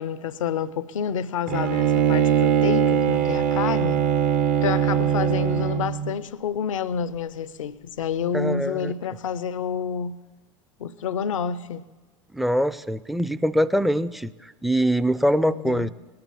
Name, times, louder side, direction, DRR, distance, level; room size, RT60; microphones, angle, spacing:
voice 1, 0.0-4.0 4.6-10.2 10.8-11.8 15.5-15.9, left 7 dB, 80° left, 0.6 m, -29 dB
Bowed string instrument, 1.5-6.1, right 9 dB, 55° right, 1.0 m, -21 dB
voice 2, 8.3-8.9 12.3-15.9, equal, ahead, 0.5 m, -23 dB
19.0 x 10.5 x 7.2 m
hypercardioid pair, 80°, 17 cm